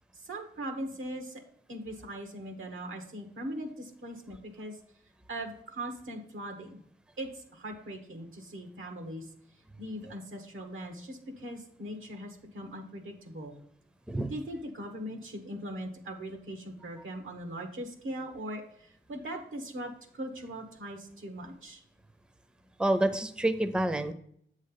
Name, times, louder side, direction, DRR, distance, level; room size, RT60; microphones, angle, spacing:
voice 1, 0.1-1.4 1.7-4.8 5.3-6.8 7.2-9.3 9.8-13.5 14.3-21.8, right 1 dB, 85° right, 4 dB, 1.1 m, -40 dB
voice 2, 22.8-24.1, right 1 dB, 5° right, 9 dB, 0.6 m, -27 dB
7.7 x 3.2 x 5.6 m, 0.66 s
cardioid pair, 50°, 20 cm